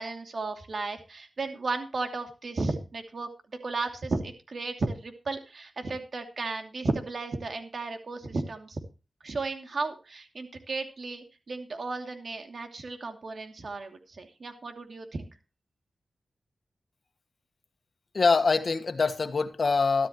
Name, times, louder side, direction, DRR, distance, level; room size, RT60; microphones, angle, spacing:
voice 1, 0.0-3.3 3.6-8.8 9.2-15.3, right 3 dB, 65° right, 2.7 m, -34 dB
voice 2, 18.1-20.1, left 4 dB, 60° left, 1.6 m, -24 dB
14.0 x 13.0 x 3.1 m
cardioid pair, 50°, 0 cm